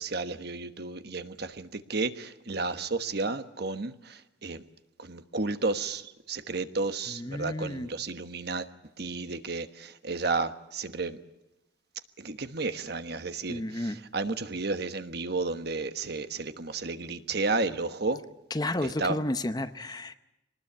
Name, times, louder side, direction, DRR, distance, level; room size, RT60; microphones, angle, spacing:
voice 1, 0.0-4.6 5.0-8.7 9.0-11.2 12.2-18.2 18.8-19.2, right 3 dB, 55° right, 10 dB, 1.3 m, -32 dB
voice 2, 7.1-7.9 13.5-14.0 18.5-20.1, left 1 dB, 20° left, 11 dB, 0.8 m, -32 dB
24.0 x 19.5 x 8.6 m, 0.94 s
head